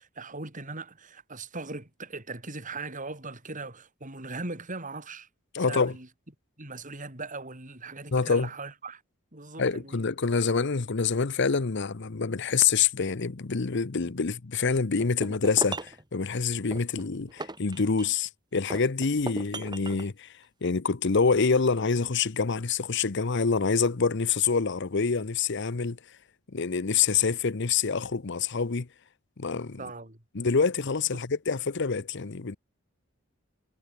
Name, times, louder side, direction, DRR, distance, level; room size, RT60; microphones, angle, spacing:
voice 1, 0.0-5.3 5.6-6.1 6.6-9.0 9.3-10.0 29.8-30.2, right 3 dB, 40° right, 5.4 m, -39 dB
voice 2, 5.5-6.0 8.1-8.5 9.6-20.3 20.6-26.0 26.5-28.9 29.4-29.8 30.3-32.6, left 5 dB, 60° left, 0.8 m, -26 dB
sound 1, 15.0-16.0 16.7-18.3 18.7-20.1, right 2 dB, 20° right, 3.1 m, -38 dB
head